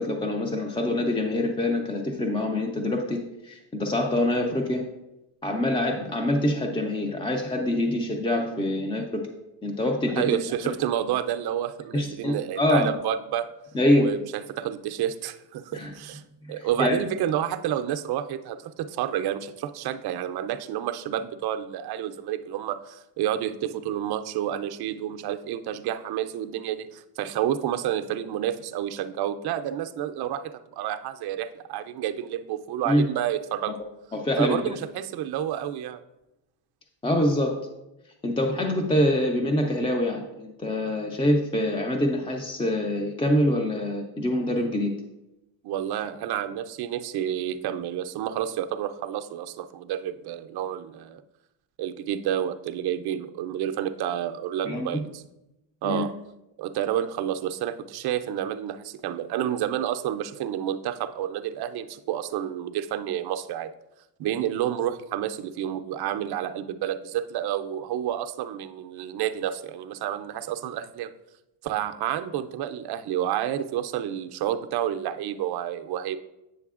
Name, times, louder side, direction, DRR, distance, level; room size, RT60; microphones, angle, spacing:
voice 1, 0.0-4.8 5.4-9.3 9.6-10.4 11.9-12.9 13.7-14.1 15.7-15.9 16.5-17.0 32.9-33.0 34.1-34.6 37.0-37.6 38.2-44.9 54.6-55.0 55.8-56.1, left 1 dB, 10° left, 2 dB, 0.4 m, -25 dB
voice 2, 10.2-13.5 14.0-16.2 16.5-33.8 34.4-36.0 45.6-51.2 51.8-55.2 55.8-56.1 56.6-63.7 64.2-71.1 71.6-76.2, right 10 dB, 50° right, 8 dB, 0.5 m, -29 dB
8.4 x 6.4 x 2.4 m, 0.95 s
cardioid pair, 120°, 49 cm